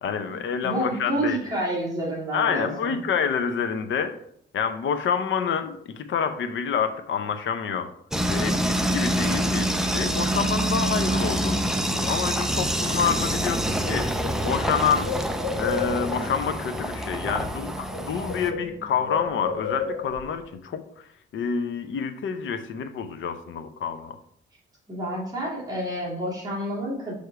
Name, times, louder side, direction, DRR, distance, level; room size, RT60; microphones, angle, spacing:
voice 1, 0.0-1.4 2.3-4.2 4.5-7.9 8.3-14.1 14.4-21.0 21.3-24.2, left 7 dB, 85° left, 9 dB, 0.7 m, -28 dB
voice 2, 0.6-3.0 24.9-27.1, right 1 dB, 20° right, -7 dB, 2.2 m, -29 dB
sound 1, 8.1-18.5, right 1 dB, ahead, 0.4 m, -26 dB
Bird, 13.8-16.3 17.4-17.6 17.9-20.3, left 4 dB, 25° left, 1.7 m, -32 dB
6.4 x 3.5 x 4.6 m, 0.67 s
wide cardioid pair, 160°, 20 cm